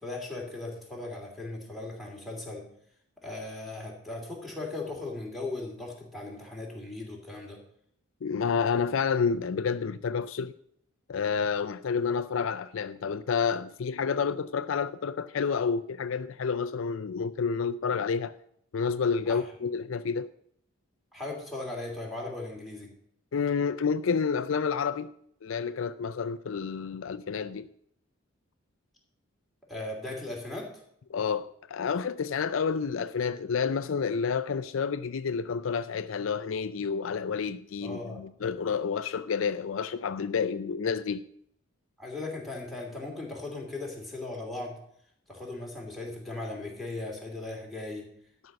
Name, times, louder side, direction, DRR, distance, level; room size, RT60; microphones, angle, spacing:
voice 1, 0.0-2.7 3.2-7.6 19.3-19.4 21.1-22.9 29.7-30.7 37.8-38.2 42.0-44.8 45.3-48.1, left 2 dB, ahead, 2.9 m, -38 dB
voice 2, 8.2-10.5 11.1-18.3 18.7-20.3 23.3-25.1 25.4-27.7 31.1-41.2, left 6 dB, 70° left, 0.4 m, -29 dB
12.5 x 5.5 x 7.7 m
head